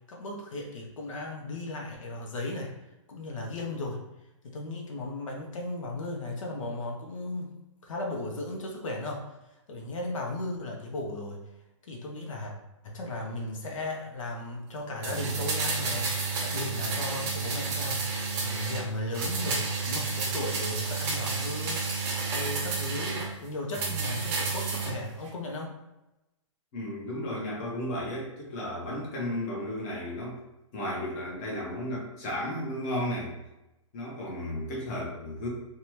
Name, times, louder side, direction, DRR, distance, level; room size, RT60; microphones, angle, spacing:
voice 1, 0.1-2.7 3.1-4.0 4.4-7.5 7.8-9.2 9.7-11.4 11.9-12.5 12.8-25.7, left 2 dB, 75° left, 0 dB, 0.7 m, -36 dB
sound 1, 15.0-18.9 19.1-23.3 23.7-24.9 25.2-25.3, right 4 dB, 15° right, 0.4 m, -31 dB
voice 2, 26.7-30.4 30.7-33.3 33.9-35.5, left 1 dB, 30° left, -4 dB, 0.8 m, -34 dB
2.7 x 2.3 x 3.0 m, 0.96 s
hypercardioid pair, 160°, 17 cm